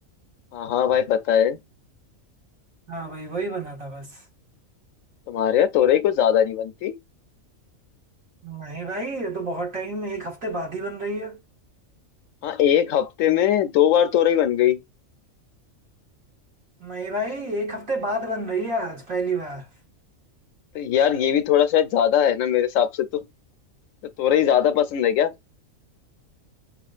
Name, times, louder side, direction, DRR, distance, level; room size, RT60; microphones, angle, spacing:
voice 1, 0.5-1.6 5.3-6.9 12.4-14.8 20.7-23.2 24.2-25.3, left 10 dB, 75° left, 1.0 m, -20 dB
voice 2, 2.9-4.2 8.4-11.4 16.8-19.7, right 1 dB, 85° right, 2.1 m, -29 dB
5.6 x 2.4 x 2.4 m
omnidirectional pair, 1.4 m